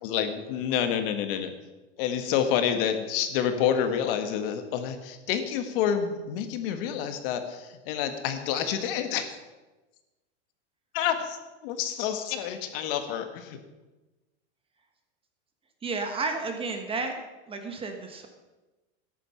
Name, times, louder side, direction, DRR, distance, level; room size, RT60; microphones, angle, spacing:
voice 1, 0.0-1.5 2.0-9.2 10.9-11.4 11.6-13.6, left 8 dB, 55° left, 7 dB, 1.6 m, -28 dB
voice 2, 15.8-17.1 17.5-18.3, right 3 dB, 15° right, 5 dB, 1.3 m, -32 dB
13.5 x 10.5 x 5.8 m, 1.1 s
supercardioid pair, 155°, 33 cm